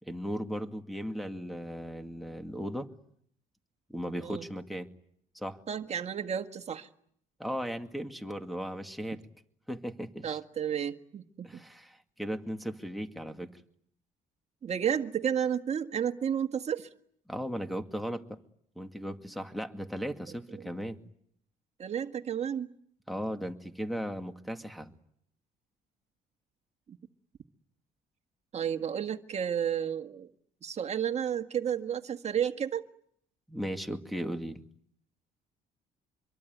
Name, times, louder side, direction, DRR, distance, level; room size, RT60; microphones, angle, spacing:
voice 1, 0.0-2.9 3.9-4.9 5.3-5.6 7.4-9.3 9.7-10.4 11.4-13.6 17.3-18.4 18.8-21.0 23.1-24.9 33.5-34.6, equal, ahead, 7 dB, 2.2 m, -37 dB
voice 2, 5.7-6.9 10.2-11.6 14.6-16.9 20.5-20.6 21.8-22.7 26.9-27.0 28.5-30.3 30.6-32.8, right 8 dB, 40° right, 7 dB, 1.7 m, -32 dB
26.5 x 23.0 x 9.4 m, 0.67 s
cardioid pair, 110°, 17 cm